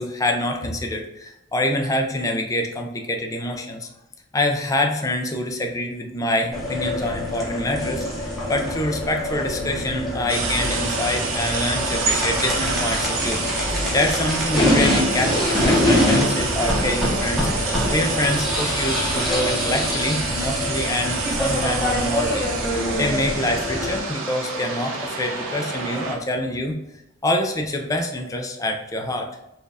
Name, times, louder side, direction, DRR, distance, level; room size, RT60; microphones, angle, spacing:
voice 1, 0.0-3.9 4.3-13.4 13.7-26.8 27.2-29.3, left 1 dB, 15° left, 3 dB, 0.4 m, -26 dB
sound 1, 6.5-24.0, left 1 dB, ahead, 0.8 m, -25 dB
sound 2, 10.3-26.2, right 3 dB, 85° right, 0.8 m, -27 dB
4.2 x 2.4 x 3.3 m, 0.87 s
head